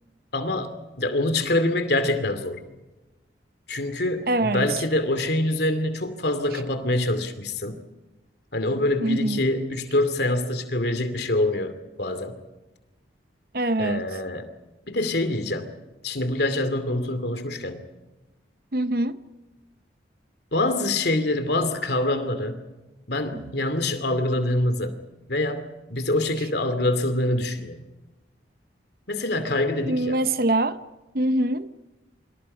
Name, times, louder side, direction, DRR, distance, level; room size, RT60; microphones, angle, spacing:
voice 1, 0.3-0.7 1.0-2.6 3.7-7.8 8.5-12.4 13.8-14.5 14.9-15.7 16.0-17.8 20.5-22.6 23.1-25.0 25.3-27.8 29.1-30.2, left 1 dB, 65° left, 2.5 m, -25 dB
voice 2, 4.3-4.7 9.0-9.4 13.5-14.1 18.7-19.2 23.3-23.4 29.8-30.8 31.1-31.7, right 1 dB, 55° right, 0.9 m, -24 dB
28.0 x 25.0 x 5.6 m
head